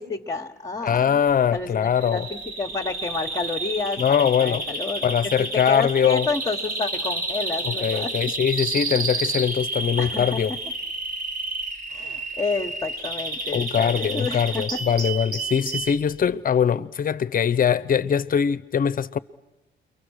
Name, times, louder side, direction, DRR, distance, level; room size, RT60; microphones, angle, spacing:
voice 1, 0.0-1.2 1.5-5.0 5.4-8.3 10.0-10.4 11.9-14.8, left 4 dB, 20° left, 1.4 m, -30 dB
voice 2, 0.8-2.3 4.0-4.6 5.0-6.3 7.6-10.5 13.5-19.2, left 8 dB, 45° left, 0.8 m, -22 dB
Bird vocalization bird call bird song, 2.0-16.0, right 2 dB, 50° right, 3.6 m, -30 dB
29.0 x 23.5 x 6.5 m
cardioid pair, 90°, 20 cm